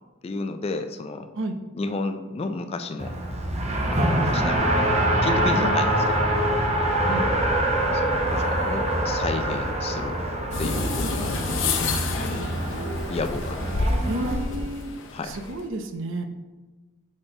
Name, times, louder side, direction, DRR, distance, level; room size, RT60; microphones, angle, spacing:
voice 1, 0.2-1.3 1.7-3.2 3.9-6.3 7.0-7.2 7.9-10.2 10.6-11.4 12.2-12.5 13.1-14.0 15.1-15.4, left 3 dB, 30° left, 8 dB, 0.3 m, -32 dB
Race car auto racing, 3.0-14.3, right 1 dB, 35° right, 0.7 m, -25 dB
sound 1, 10.5-15.7, left 3 dB, 70° left, 0.7 m, -28 dB
voice 2, 14.0-16.2, right 2 dB, 75° right, 6 dB, 0.6 m, -31 dB
6.2 x 4.1 x 3.8 m, 1.2 s
head